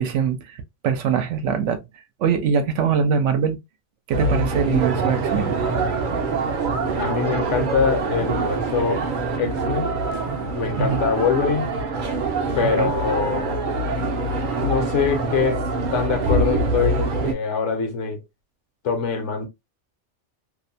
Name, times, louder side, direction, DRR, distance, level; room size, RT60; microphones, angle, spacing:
voice 1, 0.0-1.9 2.2-3.6 4.1-5.5 10.8-11.0 12.6-12.9, right 7 dB, 80° right, 0.9 m, -22 dB
sound 1, 4.1-17.3, right 3 dB, 55° right, 0.6 m, -24 dB
voice 2, 7.0-9.1 9.4-9.9 10.5-11.7 12.5-13.5 14.6-15.6 15.9-18.2 18.8-19.5, left 6 dB, 75° left, 1.0 m, -24 dB
2.6 x 2.1 x 2.5 m
omnidirectional pair, 1.2 m